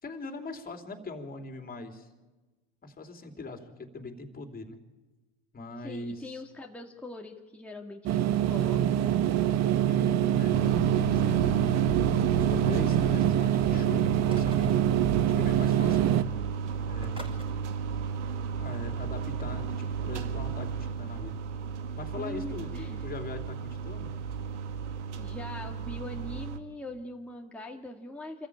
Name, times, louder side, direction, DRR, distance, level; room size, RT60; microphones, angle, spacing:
voice 1, 0.0-2.1 2.8-4.8 5.5-6.4 9.8-11.6 12.1-14.7 15.3-16.2 16.8-17.3 18.6-21.4 22.0-24.1, left 3 dB, 25° left, 6 dB, 3.4 m, -41 dB
voice 2, 5.8-9.4 22.2-23.0 25.2-28.5, left 1 dB, 5° left, 0 dB, 2.0 m, -42 dB
sound 1, 8.1-16.2, right 11 dB, 50° right, 1.2 m, -25 dB
sound 2, 10.5-26.6, right 6 dB, 90° right, 1.4 m, -33 dB
sound 3, 13.2-13.7 14.3-15.0 15.8-15.9 16.2-16.4 17.0-17.5 19.4-19.5, right 1 dB, 15° right, 5.9 m, -48 dB
26.5 x 14.0 x 8.7 m, 1.2 s
hypercardioid pair, 90°, 35 cm